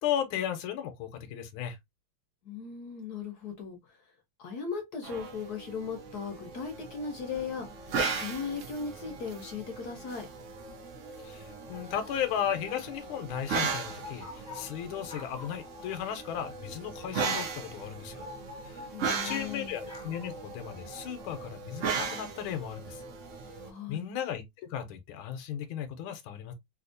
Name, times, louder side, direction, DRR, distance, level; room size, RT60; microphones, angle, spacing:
voice 1, 0.0-1.8 11.2-18.3 18.6-18.9 19.2-23.0 23.9-26.5, left 9 dB, 80° left, 1.5 m, -35 dB
voice 2, 2.4-4.0 4.4-10.3 18.9-19.7 23.6-24.1, left 5 dB, 60° left, 1.1 m, -38 dB
sound 1, 5.0-23.7, right 5 dB, 70° right, 0.7 m, -37 dB
sound 2, 11.7-21.2, left 2 dB, 5° left, 0.6 m, -49 dB
3.5 x 2.7 x 2.5 m
omnidirectional pair, 2.3 m